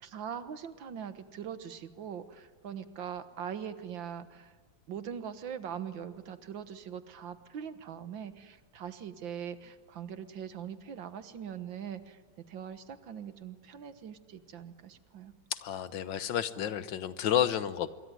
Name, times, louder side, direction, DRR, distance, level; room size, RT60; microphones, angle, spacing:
voice 1, 0.0-4.5 4.9-15.3, right 8 dB, 85° right, 11 dB, 2.1 m, -42 dB
voice 2, 15.5-17.9, left 10 dB, 80° left, 13 dB, 1.8 m, -30 dB
26.0 x 23.0 x 9.6 m, 1.3 s
omnidirectional pair, 2.0 m